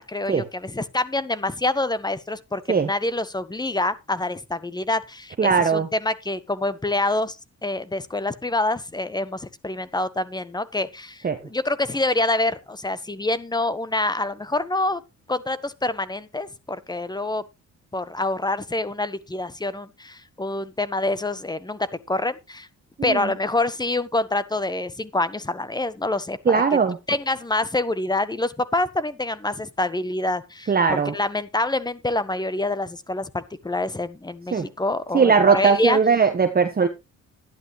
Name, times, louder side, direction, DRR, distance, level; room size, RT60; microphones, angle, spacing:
voice 1, 0.0-7.4 7.6-15.0 15.3-17.4 17.9-22.7 23.0-26.6 27.1-36.0, left 2 dB, 15° left, 1.3 m, -26 dB
voice 2, 5.4-5.9 11.2-11.4 23.0-23.3 26.5-27.0 30.7-31.1 34.5-34.7 35.1-36.9, right 5 dB, 30° right, 1.3 m, -19 dB
12.5 x 11.0 x 3.2 m
cardioid pair, 90°, 30 cm